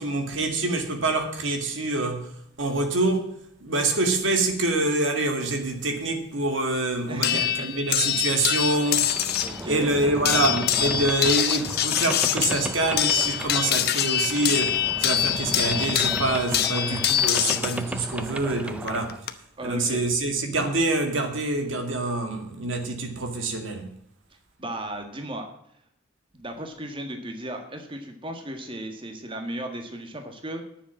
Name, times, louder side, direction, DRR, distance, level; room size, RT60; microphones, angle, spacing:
voice 1, 0.0-2.3 2.6-9.1 9.6-19.2 19.6-23.9, right 2 dB, 80° right, 2.1 m, -26 dB
voice 2, 7.1-7.7 9.4-9.9 16.6-17.4 19.6-20.0 24.6-25.5 26.3-30.6, right 1 dB, 25° right, 1.6 m, -35 dB
sound 1, 7.2-9.6 10.2-17.8 18.9-19.3, left 11 dB, 55° left, 0.8 m, -25 dB
Boat Water vehicle, 8.7-19.2, right 1 dB, 5° right, 0.6 m, -35 dB
10.5 x 7.1 x 7.5 m
head